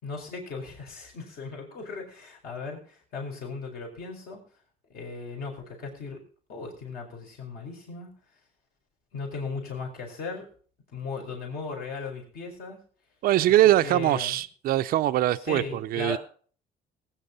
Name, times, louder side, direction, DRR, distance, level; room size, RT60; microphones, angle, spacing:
voice 1, 0.0-4.4 4.9-6.2 6.5-8.1 9.1-10.5 10.9-12.8 13.8-14.4 15.3-16.2, left 4 dB, 65° left, 4.8 m, -37 dB
voice 2, 13.2-16.2, right 14 dB, 60° right, 0.5 m, -22 dB
19.0 x 9.5 x 4.0 m
cardioid pair, 110°, 17 cm